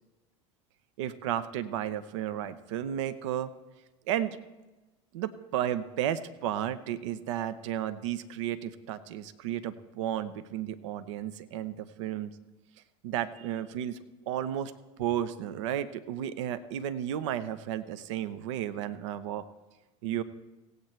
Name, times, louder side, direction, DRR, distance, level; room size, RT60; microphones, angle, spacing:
voice 1, 1.0-3.5 4.1-4.4 5.1-12.3 13.0-14.0 14.3-14.7 15.0-19.4 20.0-20.2, right 10 dB, 70° right, 13 dB, 0.6 m, -33 dB
17.0 x 8.1 x 4.3 m, 1.1 s
hypercardioid pair, 75°, 16 cm